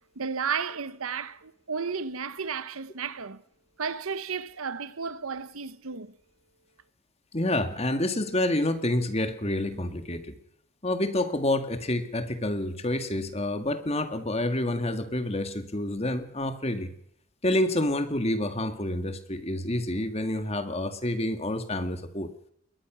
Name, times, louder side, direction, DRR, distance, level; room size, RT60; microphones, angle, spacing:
voice 1, 0.2-3.4 3.8-6.1, right 5 dB, 90° right, 1.1 m, -33 dB
voice 2, 7.3-10.3 10.8-16.9 17.4-22.3, left 1 dB, 30° left, 1.9 m, -28 dB
21.5 x 19.5 x 6.2 m
head